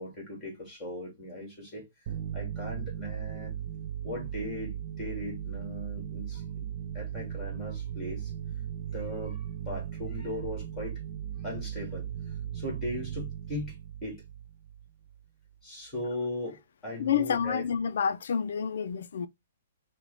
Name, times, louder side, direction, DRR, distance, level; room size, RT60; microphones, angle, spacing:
voice 1, 0.0-1.9 2.3-3.6 4.0-6.7 6.9-8.3 8.9-11.0 11.4-12.1 12.5-14.2 15.6-17.6, left 1 dB, 15° left, 2.1 m, -38 dB
sound 1, 2.1-15.2, right 9 dB, 40° right, 0.5 m, -37 dB
voice 2, 17.0-19.3, left 7 dB, 65° left, 0.4 m, -28 dB
4.3 x 2.2 x 4.0 m
hypercardioid pair, 165°, 0 cm